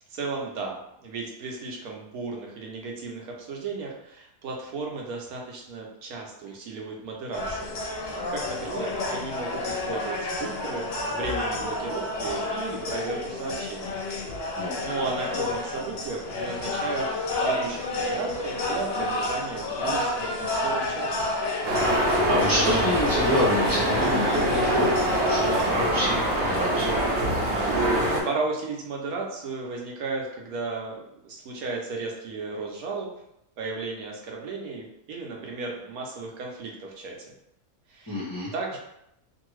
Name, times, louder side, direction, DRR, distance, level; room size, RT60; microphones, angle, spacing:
voice 1, 0.1-14.0 14.8-17.1 17.4-21.1 28.2-33.1 33.6-37.2 37.9-38.2 38.5-38.8, right 3 dB, 80° right, -1 dB, 1.2 m, -34 dB
sound 1, 7.3-25.6, left 2 dB, 55° left, 0.7 m, -30 dB
sound 2, 21.6-28.2, right 1 dB, 60° right, 0.8 m, -24 dB
voice 2, 21.9-26.9 38.1-38.5, left 1 dB, 25° left, -7 dB, 0.5 m, -28 dB
2.7 x 2.6 x 3.0 m, 0.79 s
omnidirectional pair, 1.5 m